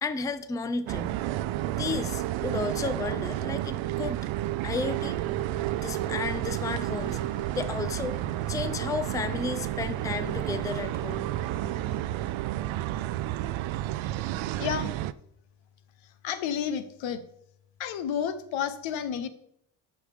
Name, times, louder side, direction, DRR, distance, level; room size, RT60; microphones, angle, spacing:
voice 1, 0.0-1.2 1.7-4.2 4.6-5.2 5.8-7.2 7.6-8.2 8.5-11.3, left 4 dB, 10° left, 12 dB, 0.4 m, -33 dB
sound 1, 0.9-15.1, right 14 dB, 80° right, 0.5 m, -31 dB
sound 2, 4.7-13.9, right 1 dB, 25° left, 3.2 m, -45 dB
voice 2, 14.6-14.9 16.2-17.2 17.8-19.3, left 8 dB, 80° left, 12 dB, 0.9 m, -31 dB
11.5 x 6.3 x 3.5 m, 0.72 s
cardioid pair, 120°, 46 cm